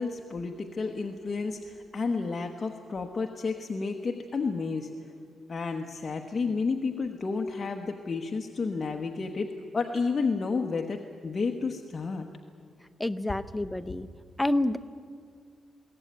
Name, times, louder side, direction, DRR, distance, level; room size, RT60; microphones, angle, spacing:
voice 1, 0.0-4.9 5.5-12.3, left 4 dB, 30° left, 3 dB, 1.2 m, -31 dB
voice 2, 13.0-14.1 14.4-14.8, left 1 dB, 5° left, 9 dB, 0.7 m, -28 dB
22.5 x 17.0 x 9.4 m, 2.2 s
wide cardioid pair, 145°, 0 cm